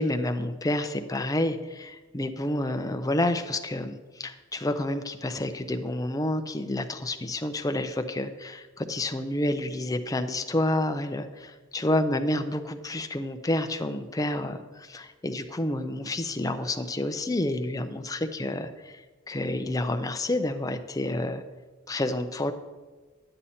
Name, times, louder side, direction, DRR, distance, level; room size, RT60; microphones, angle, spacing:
voice 1, 0.0-21.4 21.9-22.5, left 1 dB, 15° left, 7 dB, 0.6 m, -29 dB
9.8 x 8.9 x 4.2 m, 1.3 s
head